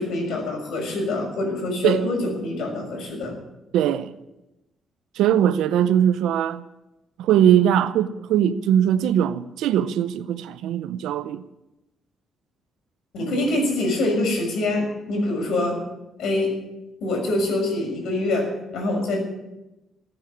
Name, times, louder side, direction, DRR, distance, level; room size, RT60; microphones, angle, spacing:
voice 1, 0.0-3.3 13.1-15.8 16.2-16.6 17.0-19.2, left 2 dB, 75° left, 6.3 m, -25 dB
voice 2, 3.7-4.1 5.2-6.6 7.2-11.4, right 10 dB, 90° right, 0.7 m, -20 dB
15.0 x 9.0 x 9.7 m
cardioid pair, 110°, 0 cm